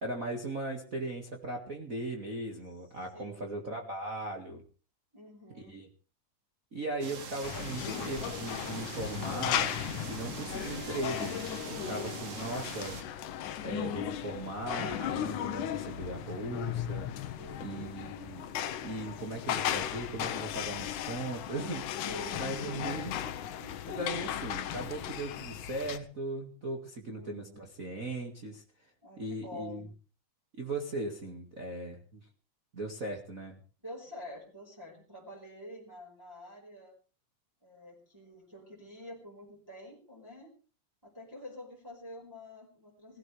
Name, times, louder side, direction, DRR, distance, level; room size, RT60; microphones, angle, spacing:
voice 1, 0.0-4.6 5.5-5.9 6.7-9.7 10.0-11.4 11.6-13.0 13.6-17.1 17.6-18.5 18.8-23.1 23.9-28.9 29.2-29.9 30.6-32.3 32.7-33.6, right 2 dB, 30° right, 1 dB, 2.0 m, -38 dB
voice 2, 3.1-3.7 5.1-5.8 11.8-12.6 17.4-18.0 22.0-23.8 27.1-27.6 29.0-29.9 33.8-36.9 37.6-40.5 41.0-43.2, left 1 dB, 5° right, -3 dB, 4.9 m, -47 dB
sound 1, 7.0-13.0, right 5 dB, 70° right, 3.5 m, -43 dB
sound 2, 7.4-26.0, left 10 dB, 80° left, 2.5 m, -36 dB
20.5 x 16.5 x 3.4 m, 0.37 s
omnidirectional pair, 3.6 m